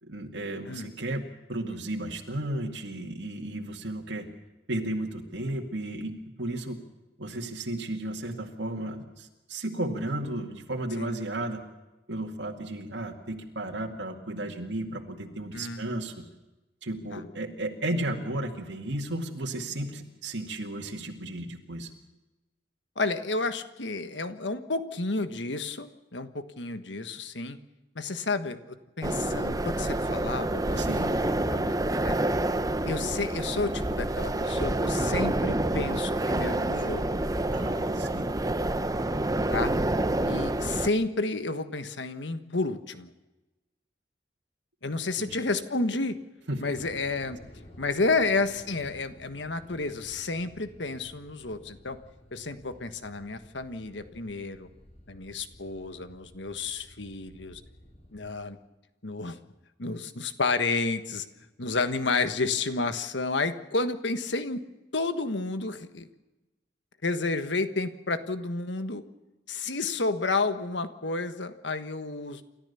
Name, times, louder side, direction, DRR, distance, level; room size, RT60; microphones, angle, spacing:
voice 1, 0.0-4.3 4.7-6.8 7.2-11.6 12.1-16.1 16.8-21.9 30.8-31.1 37.5-38.3 45.2-45.4 46.5-46.6, right 1 dB, 80° right, 1 dB, 2.2 m, -34 dB
voice 2, 23.0-27.6 27.9-31.8 32.0-32.2 32.9-37.0 39.5-39.7 40.2-43.1 44.8-46.1 46.6-47.4 47.8-52.0 52.3-54.7 55.1-57.6 58.1-58.6 59.0-59.4 59.8-61.2 61.6-64.6 64.9-66.1 67.0-69.0 69.5-72.4, left 3 dB, 80° left, 10 dB, 1.5 m, -31 dB
sound 1, 29.0-40.9, right 1 dB, 20° right, 0.8 m, -28 dB
sound 2, 46.7-58.4, equal, 40° left, 4.2 m, -53 dB
29.0 x 13.5 x 7.0 m, 1.1 s
head